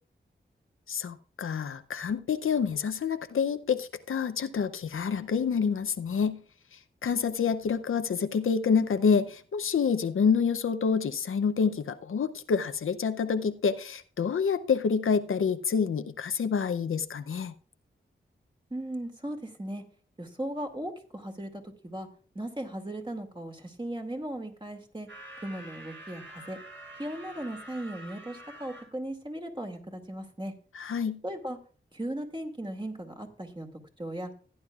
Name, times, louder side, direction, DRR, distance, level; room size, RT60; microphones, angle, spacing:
voice 1, 0.9-6.4 7.0-17.5 30.7-31.2, left 6 dB, 85° left, 0.6 m, -27 dB
voice 2, 18.7-19.8 20.2-22.1 22.3-25.1 25.4-26.6 27.0-30.5 31.2-31.6 31.9-33.7 34.0-34.3, right 1 dB, 25° right, 2.3 m, -37 dB
sound 1, 25.1-28.9, right 1 dB, 65° right, 4.9 m, -47 dB
16.0 x 9.5 x 2.4 m
cardioid pair, 45°, 21 cm